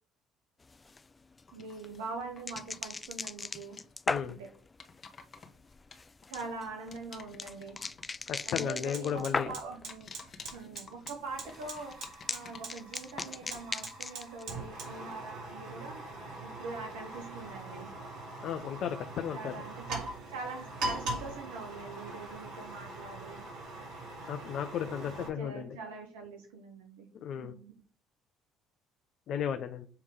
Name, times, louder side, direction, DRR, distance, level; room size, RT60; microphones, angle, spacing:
sound 1, 0.6-9.9 10.2-10.8 11.1-14.4, left 3 dB, 25° left, 0.3 m, -39 dB
sound 2, 1.5-3.0 3.2-3.9 4.5-6.5 6.9-12.9 13.2-13.8, left 5 dB, 45° left, 1.3 m, -50 dB
voice 1, 1.5-3.8 4.3-4.5 6.3-7.8 8.4-10.1 10.5-12.0 12.3-16.0 16.4-18.0 19.3-23.4 25.2-27.1 27.4-27.7, right 3 dB, 85° right, 3 dB, 0.9 m, -43 dB
voice 2, 4.1-4.4 8.3-9.5 18.4-19.6 24.3-25.8 27.2-27.5 29.3-29.9, left 8 dB, 60° left, 6 dB, 0.6 m, -34 dB
Fire, 7.8-7.9 8.3-25.3, right 2 dB, 65° right, 2.9 m, -42 dB
7.0 x 3.5 x 4.9 m, 0.39 s
hypercardioid pair, 60°, 0 cm